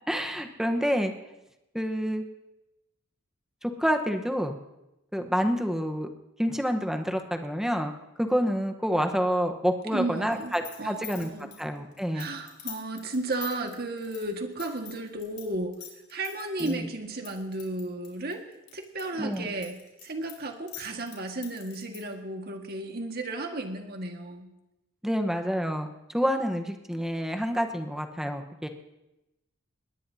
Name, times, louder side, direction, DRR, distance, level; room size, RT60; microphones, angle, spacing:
voice 1, 0.1-1.1 1.7-2.2 3.6-4.6 5.1-6.1 6.4-7.9 8.2-11.3 11.6-12.3 16.6-16.9 19.2-19.5 25.0-28.7, equal, ahead, 5 dB, 1.1 m, -28 dB
voice 2, 9.9-10.5 10.8-11.5 12.1-15.7 16.1-18.4 18.7-19.8 20.0-24.5, right 2 dB, 50° right, 3 dB, 1.7 m, -34 dB
sound 1, 10.3-15.4 15.7-16.7 17.2-19.0 19.3-22.1, left 11 dB, 55° left, 4.7 m, -43 dB
21.0 x 18.5 x 2.8 m, 0.95 s
head